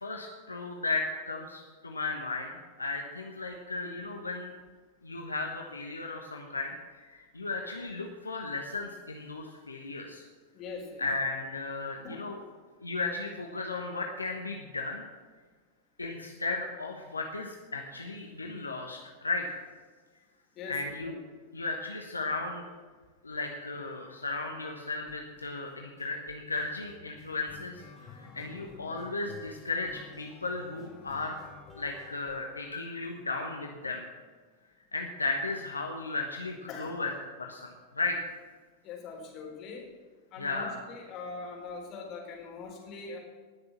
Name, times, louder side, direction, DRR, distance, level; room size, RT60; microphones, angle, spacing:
voice 1, 0.0-4.5 5.0-10.2 11.0-12.4 12.8-15.0 16.0-19.6 20.7-21.2 21.5-22.7 23.2-27.8 28.1-31.4 31.7-34.0 34.9-37.1 37.4-38.2 40.4-40.8, left 3 dB, 80° left, 2 dB, 1.3 m, -35 dB
voice 2, 10.5-11.0 12.0-12.2 20.6-20.9 36.7-37.0 38.8-39.9 40.3-43.2, left 4 dB, 35° left, 0 dB, 3.9 m, -42 dB
sound 1, 25.1-25.5 26.0-33.2, left 5 dB, 20° left, 3.6 m, -51 dB
19.0 x 6.8 x 7.2 m, 1.5 s
figure-of-eight pair, 90°, 0 cm